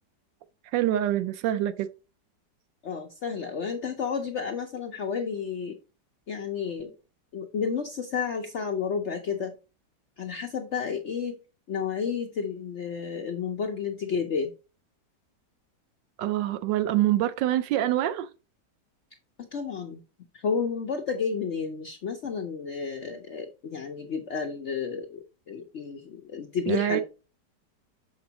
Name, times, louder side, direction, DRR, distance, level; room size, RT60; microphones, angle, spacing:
voice 1, 0.7-1.9 16.2-18.3 26.7-27.0, right 13 dB, 85° right, 1.3 m, -25 dB
voice 2, 2.8-5.8 6.3-6.9 7.3-9.5 10.2-11.4 11.7-14.5 19.4-20.0 20.3-27.0, left 6 dB, 60° left, 0.7 m, -31 dB
6.9 x 5.2 x 2.8 m
omnidirectional pair, 1.9 m